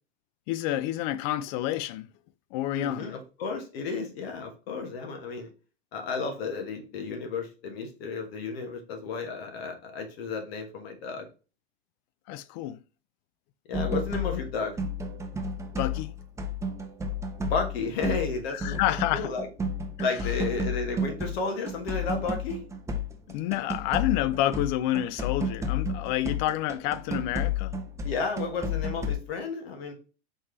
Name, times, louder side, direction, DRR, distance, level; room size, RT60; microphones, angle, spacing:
voice 1, 0.5-2.1 2.5-3.2 12.3-12.8 15.8-16.1 18.5-19.3 23.3-27.7, left 13 dB, 45° left, 0.4 m, -29 dB
voice 2, 2.7-5.5 5.9-11.3 13.7-14.8 17.4-18.8 19.1-19.5 20.0-22.6 28.0-29.9, left 4 dB, 65° left, 1.3 m, -32 dB
sound 1, 13.7-21.4 21.7-29.1, left 3 dB, 10° right, 0.5 m, -32 dB
4.4 x 3.2 x 3.1 m
hypercardioid pair, 95°, 32 cm